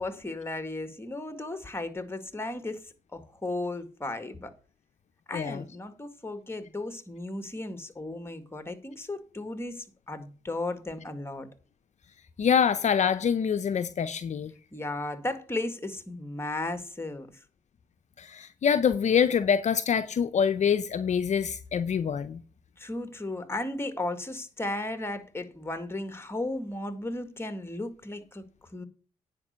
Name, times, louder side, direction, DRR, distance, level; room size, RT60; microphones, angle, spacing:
voice 1, 0.0-4.5 5.3-11.5 14.7-17.4 22.8-28.4 28.7-28.9, left 2 dB, 15° left, 1.9 m, -35 dB
voice 2, 12.4-14.5 18.2-22.4, left 7 dB, 55° left, 0.6 m, -25 dB
9.5 x 5.3 x 6.8 m
supercardioid pair, 50°, 14 cm